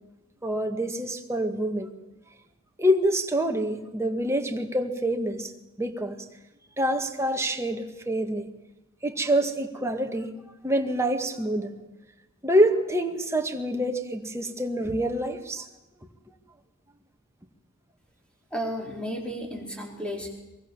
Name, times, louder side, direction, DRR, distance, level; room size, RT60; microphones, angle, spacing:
voice 1, 0.4-1.9 2.8-5.5 5.8-6.2 6.8-8.5 9.0-10.3 10.6-11.7 12.4-15.7, equal, 15° right, 4 dB, 1.9 m, -26 dB
voice 2, 18.5-20.3, equal, 5° left, 1 dB, 4.6 m, -33 dB
23.5 x 23.0 x 7.5 m, 0.98 s
head